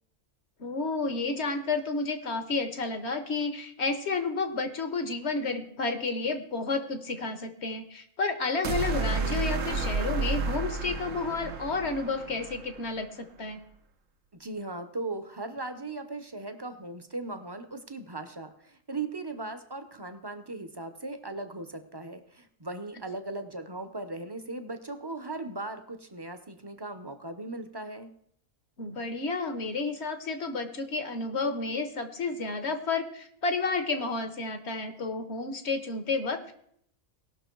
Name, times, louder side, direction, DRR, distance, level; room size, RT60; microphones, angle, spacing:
voice 1, 0.6-13.6 28.8-36.5, left 3 dB, 60° left, 8 dB, 1.4 m, -31 dB
sound 1, 8.6-12.9, right 3 dB, 75° right, 1.3 m, -31 dB
voice 2, 14.4-28.1, right 2 dB, 25° right, 8 dB, 0.7 m, -38 dB
18.0 x 6.2 x 4.6 m, 0.68 s
omnidirectional pair, 1.4 m